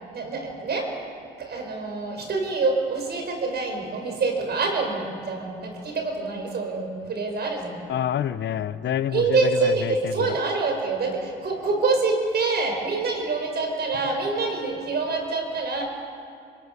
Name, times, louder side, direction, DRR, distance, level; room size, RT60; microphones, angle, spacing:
voice 1, 0.1-0.9 1.4-7.8 9.1-15.8, right 3 dB, 55° right, 3 dB, 5.9 m, -26 dB
voice 2, 7.9-10.4, left 10 dB, 65° left, 14 dB, 0.9 m, -28 dB
27.5 x 23.0 x 6.9 m, 2.4 s
cardioid pair, 90°, 20 cm